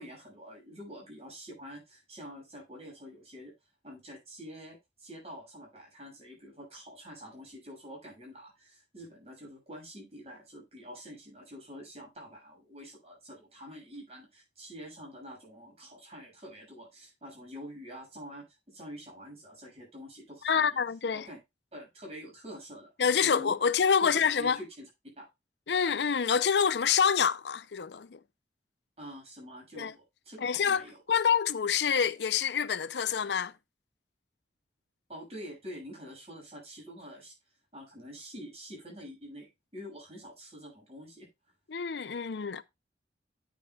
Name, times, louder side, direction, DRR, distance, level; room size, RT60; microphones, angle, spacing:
voice 1, 0.0-3.5 3.8-20.8 21.1-21.4 21.7-22.9 23.2-23.5 24.0-24.9 25.2-25.3 29.0-31.0 35.1-37.3 37.7-41.3, equal, 35° right, 6.8 m, -46 dB
voice 2, 20.4-21.2 23.0-24.6 25.7-28.2 29.8-29.9 30.4-30.8 31.1-33.5 41.7-42.6, left 7 dB, 75° left, 0.5 m, -27 dB
9.8 x 9.3 x 2.3 m
head